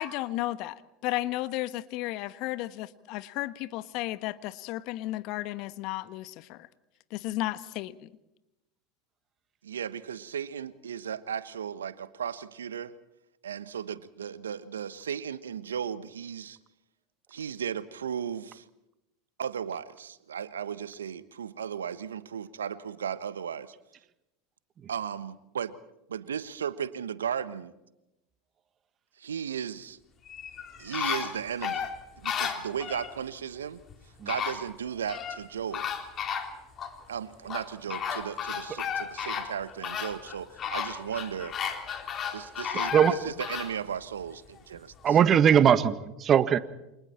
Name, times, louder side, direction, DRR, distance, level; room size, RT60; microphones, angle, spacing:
voice 1, 0.0-6.7 7.1-8.1, left 16 dB, 55° left, 13 dB, 1.3 m, -33 dB
voice 2, 9.6-12.9 13.4-16.6 17.3-18.6 19.4-23.7 24.9-25.7 26.1-27.7 29.2-30.0 30.8-31.9 32.2-33.8 34.2-35.8 37.1-41.6 42.3-45.2, right 8 dB, 85° right, 14 dB, 1.2 m, -35 dB
sound 1, 30.3-33.1 33.9-34.0 34.3-35.4 35.7-36.9 37.5-43.7 44.2-44.3, left 7 dB, 35° left, 3.6 m, -33 dB
voice 3, 45.0-46.6, right 9 dB, 35° right, 12 dB, 1.7 m, -20 dB
29.0 x 26.5 x 4.4 m, 0.90 s
hypercardioid pair, 85°, 0 cm